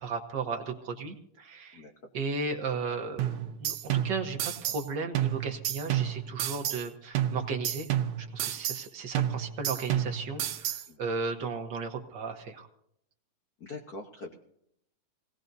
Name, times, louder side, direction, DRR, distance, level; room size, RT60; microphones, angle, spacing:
voice 1, 0.0-1.9 2.1-7.9 8.2-12.7, right 4 dB, 55° right, 4 dB, 1.2 m, -35 dB
sound 1, 3.2-4.9 5.1-6.9 7.1-8.9 9.1-10.9, right 11 dB, 75° right, 1.8 m, -31 dB
voice 2, 13.6-14.4, left 3 dB, 60° left, 1 dB, 0.9 m, -43 dB
24.5 x 18.0 x 2.7 m, 0.73 s
omnidirectional pair, 3.4 m